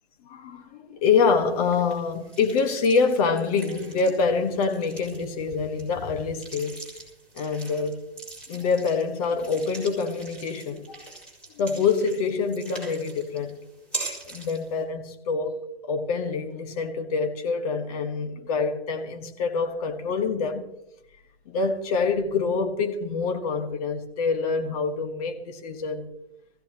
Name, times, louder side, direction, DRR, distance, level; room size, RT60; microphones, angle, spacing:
voice 1, 0.2-6.8 7.3-8.0 8.5-11.1 11.6-13.6 14.2-15.5 15.9-20.6 21.5-26.1, left 4 dB, 35° left, 1.5 m, -26 dB
sound 1, 1.3-14.8, right 3 dB, 5° left, 4.3 m, -42 dB
20.5 x 15.5 x 2.9 m
figure-of-eight pair, 125°, 31 cm